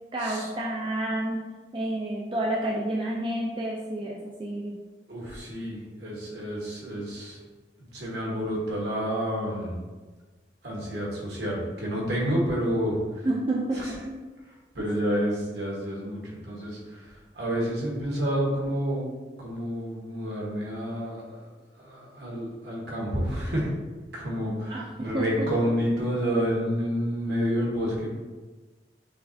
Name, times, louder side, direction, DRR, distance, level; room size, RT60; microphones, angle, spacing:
voice 1, 0.1-4.8 13.2-14.2 14.8-14.9 24.7-25.5, right 1 dB, 25° right, -2 dB, 0.4 m, -30 dB
voice 2, 5.1-7.4 7.9-9.8 10.6-13.3 13.8-13.9 14.7-17.1 17.3-19.1 19.4-21.4 21.8-23.7 24.1-28.1, equal, 65° right, -3 dB, 1.2 m, -29 dB
5.6 x 3.2 x 2.7 m, 1.3 s
head